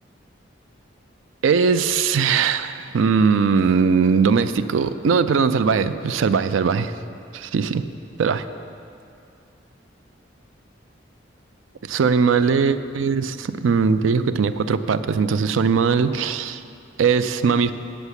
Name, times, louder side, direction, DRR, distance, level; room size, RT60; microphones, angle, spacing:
voice 1, 1.4-7.0 7.3-7.8 8.2-8.4 11.8-16.6 17.0-17.7, right 5 dB, 80° right, 12 dB, 0.4 m, -20 dB
8.1 x 7.0 x 8.1 m, 2.5 s
head